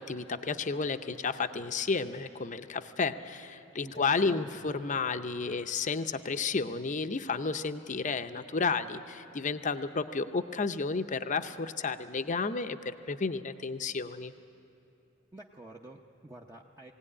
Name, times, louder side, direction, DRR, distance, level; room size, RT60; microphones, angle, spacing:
voice 1, 0.0-14.3, left 4 dB, 35° left, 9 dB, 0.6 m, -32 dB
voice 2, 3.8-4.6 15.3-16.9, right 1 dB, 15° right, -1 dB, 0.7 m, -49 dB
20.5 x 17.0 x 9.8 m, 2.9 s
head